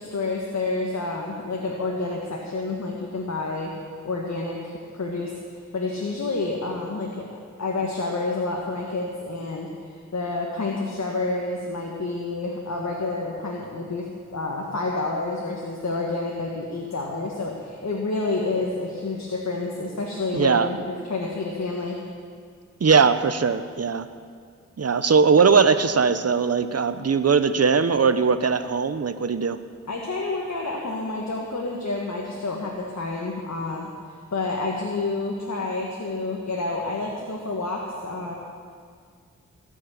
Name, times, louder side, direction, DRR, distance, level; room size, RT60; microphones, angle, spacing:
voice 1, 0.0-22.0 29.9-38.3, left 3 dB, 65° left, -1 dB, 1.8 m, -29 dB
voice 2, 20.3-20.7 22.8-24.1 24.8-29.6, right 5 dB, 55° right, 11 dB, 0.9 m, -20 dB
19.0 x 6.4 x 8.9 m, 2.1 s
cardioid pair, 40°, 30 cm